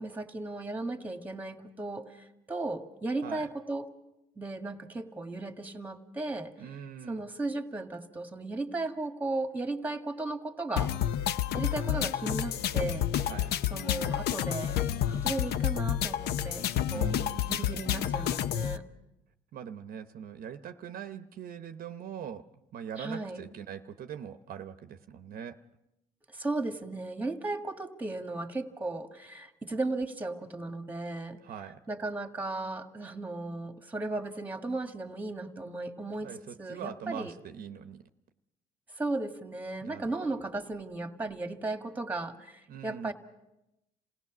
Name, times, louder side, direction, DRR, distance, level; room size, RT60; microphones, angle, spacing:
voice 1, 0.0-3.9 4.4-6.5 7.1-10.9 11.5-13.1 13.7-14.8 15.0-18.8 23.0-23.4 26.3-31.4 31.9-37.3 38.9-43.1, right 2 dB, 10° right, 6 dB, 1.7 m, -36 dB
voice 2, 6.6-7.2 13.2-13.5 16.9-17.5 19.5-22.5 22.7-25.6 31.4-31.8 36.2-38.0 39.8-40.1 42.7-43.1, right 8 dB, 60° right, 9 dB, 0.8 m, -42 dB
sound 1, 10.8-18.8, left 11 dB, 75° left, 0.7 m, -30 dB
27.5 x 17.5 x 6.1 m, 0.92 s
cardioid pair, 110°, 17 cm